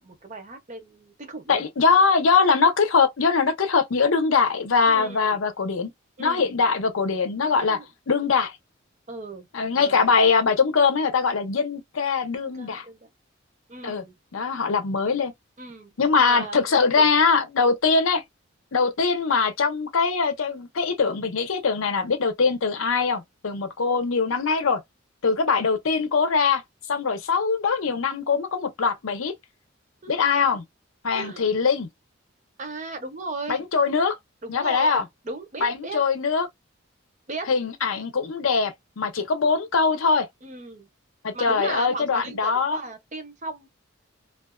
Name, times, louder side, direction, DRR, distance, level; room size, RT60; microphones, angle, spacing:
voice 1, 0.0-1.6 4.9-5.4 6.2-6.5 7.6-7.8 9.1-9.5 9.7-10.2 12.5-13.1 13.7-14.1 15.6-15.9 16.2-17.0 30.0-30.1 31.1-31.6 32.6-33.6 34.4-36.0 37.3-37.5 40.4-40.9 41.3-43.7, right 3 dB, 35° right, 0.7 m, -36 dB
voice 2, 1.5-5.9 6.2-7.8 8.1-8.6 9.5-12.8 13.8-14.0 14.3-15.3 16.0-18.2 18.7-24.8 25.2-26.6 26.9-29.3 30.1-30.6 31.0-31.9 33.5-34.2 34.5-35.0 35.6-36.5 37.5-40.3 41.2-42.8, left 5 dB, 85° left, 0.7 m, -22 dB
2.4 x 2.3 x 2.2 m
head